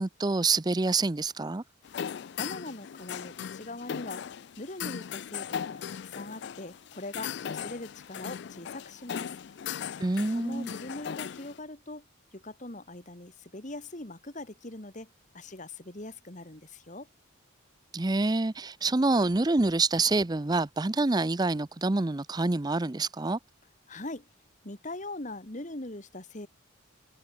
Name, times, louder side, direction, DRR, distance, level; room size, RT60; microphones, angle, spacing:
voice 1, 0.0-1.6 10.0-10.7 17.9-23.4, right 3 dB, 20° right, 0.5 m, -27 dB
sound 1, 1.8-11.6, left 8 dB, 55° left, 0.3 m, -38 dB
voice 2, 2.4-4.2 4.6-9.3 10.3-12.0 12.3-15.1 15.3-17.1 23.9-24.2 24.6-26.5, left 2 dB, 35° left, 2.2 m, -41 dB
open air
head